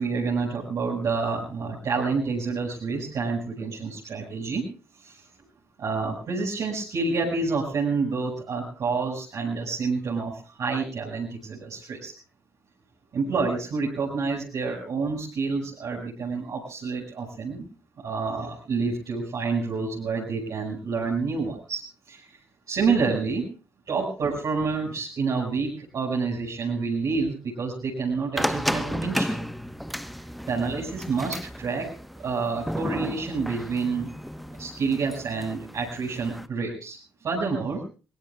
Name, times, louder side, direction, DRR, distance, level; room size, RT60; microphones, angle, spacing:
voice 1, 0.0-4.6 5.0-5.3 5.8-12.1 13.1-17.7 18.0-22.4 22.7-23.4 23.9-29.4 30.5-34.1 34.5-37.8, right 4 dB, 50° right, -4 dB, 6.0 m, -28 dB
sound 1, 28.4-36.5, equal, ahead, 1.2 m, -33 dB
23.5 x 22.0 x 2.4 m, 0.36 s
figure-of-eight pair, 45°, 7 cm